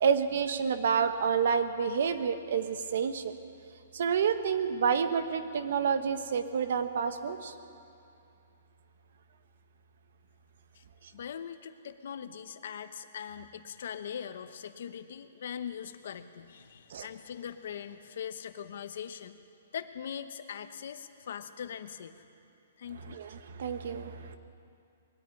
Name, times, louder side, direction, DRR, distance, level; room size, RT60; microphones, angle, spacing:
voice 1, 0.0-3.3 3.9-7.5 16.9-17.1 23.1-24.4, right 6 dB, 55° right, 10 dB, 1.2 m, -29 dB
voice 2, 11.1-19.4 19.7-22.1 22.8-23.2, left 8 dB, 55° left, 10 dB, 1.0 m, -41 dB
21.0 x 13.5 x 9.9 m, 2.6 s
hypercardioid pair, 175°, 0 cm